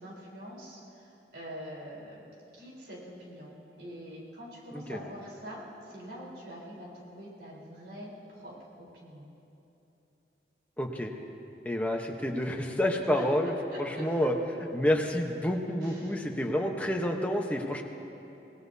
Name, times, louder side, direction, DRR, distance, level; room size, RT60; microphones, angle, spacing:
voice 1, 0.0-3.5 3.8-9.3 13.1-13.2 13.7-14.0 15.8-16.1, equal, 75° right, -5 dB, 4.0 m, -45 dB
voice 2, 10.8-11.1 11.6-13.5 13.8-14.3 14.7-17.8, left 1 dB, 10° left, 1 dB, 1.0 m, -29 dB
26.0 x 18.5 x 2.8 m, 3.0 s
head